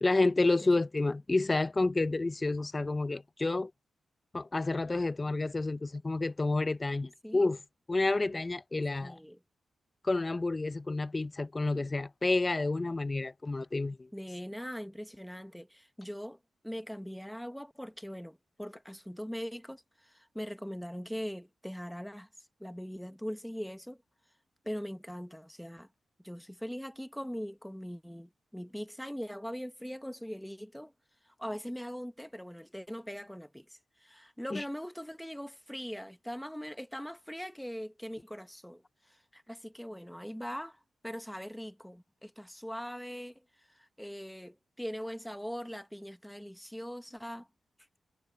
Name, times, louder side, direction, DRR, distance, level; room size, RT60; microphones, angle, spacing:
voice 1, 0.0-3.7 4.3-7.6 7.9-9.2 10.0-14.1 34.5-34.6, left 2 dB, 20° left, 0.5 m, -29 dB
voice 2, 9.0-9.4 14.1-16.4 16.6-22.3 22.6-24.0 24.6-25.9 26.2-30.9 31.3-38.8 39.1-43.4 43.7-47.5, equal, ahead, 1.1 m, -41 dB
wide cardioid pair, 135°, 0 cm